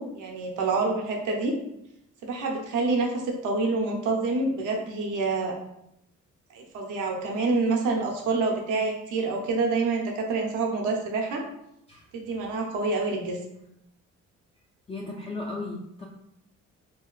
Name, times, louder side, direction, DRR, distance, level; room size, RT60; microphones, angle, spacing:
voice 1, 0.0-1.5 2.2-5.6 6.5-11.4 12.1-13.4, right 3 dB, 90° right, 1 dB, 0.7 m, -27 dB
voice 2, 14.9-16.1, left 2 dB, 20° left, -2 dB, 0.4 m, -35 dB
3.0 x 2.7 x 2.3 m, 0.80 s
cardioid pair, 90°, 30 cm